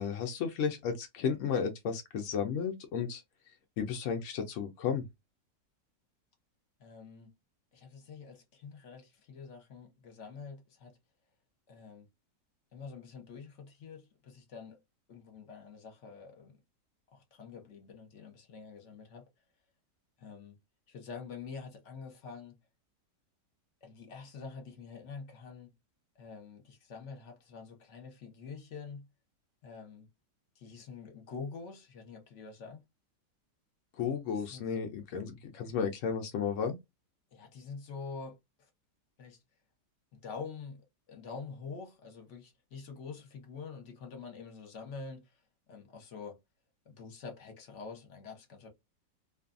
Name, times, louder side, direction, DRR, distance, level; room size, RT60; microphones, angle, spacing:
voice 1, 0.0-3.2 3.8-5.0 34.0-36.8, left 6 dB, 75° left, 0.7 m, -33 dB
voice 2, 6.8-7.3 7.7-11.0 11.7-12.1 12.7-14.8 15.1-16.6 17.1-19.3 20.2-20.6 20.9-22.6 23.8-25.7 26.2-29.1 29.6-30.1 30.6-32.8 34.3-34.7 37.3-38.7 39.2-39.4 40.1-45.2 45.7-46.4 46.9-48.7, left 5 dB, 50° left, 1.0 m, -46 dB
2.6 x 2.4 x 2.4 m
omnidirectional pair, 1.9 m